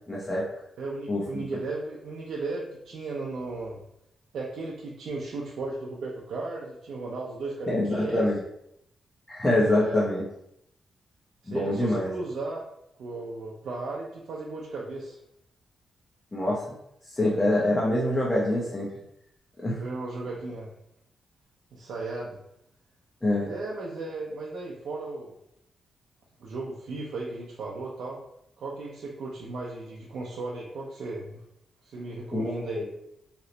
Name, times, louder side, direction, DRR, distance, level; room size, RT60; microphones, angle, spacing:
voice 1, 0.1-0.4 1.1-1.2 7.7-8.4 9.3-10.2 11.5-12.1 16.3-16.6 17.1-18.9 19.6-19.8 23.2-23.5 32.3-32.9, left 1 dB, 15° left, -4 dB, 0.6 m, -25 dB
voice 2, 0.8-3.8 4.3-8.3 9.5-10.0 11.4-12.6 13.0-15.2 19.7-20.7 21.7-22.4 23.5-25.3 26.4-28.2 28.6-31.4 31.8-32.8, right 3 dB, 75° right, -4 dB, 0.5 m, -35 dB
2.9 x 2.1 x 3.8 m, 0.78 s
wide cardioid pair, 150°, 0 cm